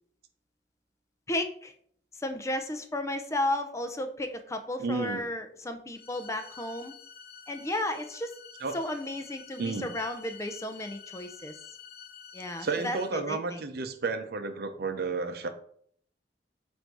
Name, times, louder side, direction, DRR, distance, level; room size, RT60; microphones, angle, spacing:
voice 1, 1.3-1.7 2.2-6.9 7.5-8.4 8.7-11.6 12.3-13.6, left 1 dB, 15° left, 7 dB, 0.5 m, -33 dB
voice 2, 4.8-5.2 8.6-8.8 9.6-9.9 12.6-15.5, right 4 dB, 60° right, 8 dB, 0.6 m, -32 dB
sound 1, 5.9-13.1, left 7 dB, 60° left, 0.8 m, -49 dB
7.9 x 2.7 x 4.6 m, 0.62 s
head